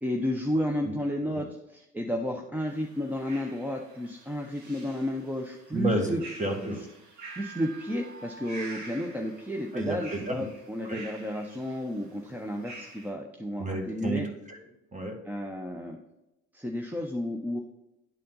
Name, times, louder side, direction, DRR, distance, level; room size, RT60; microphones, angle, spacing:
voice 1, 0.0-6.2 6.6-6.8 7.4-14.3 15.3-16.0 16.5-17.6, left 1 dB, 5° right, 1 dB, 0.8 m, -32 dB
sound 1, 2.7-13.1, right 3 dB, 80° right, 2.0 m, -47 dB
voice 2, 5.7-6.8 9.7-10.4 10.8-11.0 13.6-14.6 14.9-15.2, right 2 dB, 25° right, 3 dB, 1.8 m, -31 dB
10.5 x 4.2 x 3.9 m, 0.89 s
cardioid pair, 95°, 29 cm